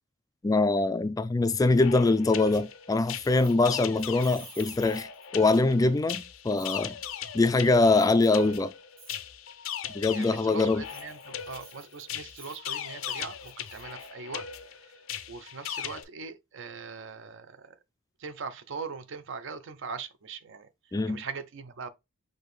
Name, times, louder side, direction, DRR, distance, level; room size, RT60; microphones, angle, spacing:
voice 1, 0.4-5.1 5.3-7.0 7.3-8.7 9.9-10.8 20.9-21.2, left 3 dB, 15° left, 0.3 m, -23 dB
sound 1, 1.7-16.0, left 9 dB, 70° left, 0.6 m, -39 dB
Keys jangling, 3.2-5.5 6.6-6.8 7.9-8.4 9.0-9.2 10.7-14.1, right 5 dB, 90° right, 2.4 m, -51 dB
voice 2, 10.1-14.5 14.8-15.0 15.3-17.8 18.2-20.7 21.0-21.9, right 5 dB, 65° right, 0.6 m, -41 dB
6.2 x 2.6 x 3.2 m
head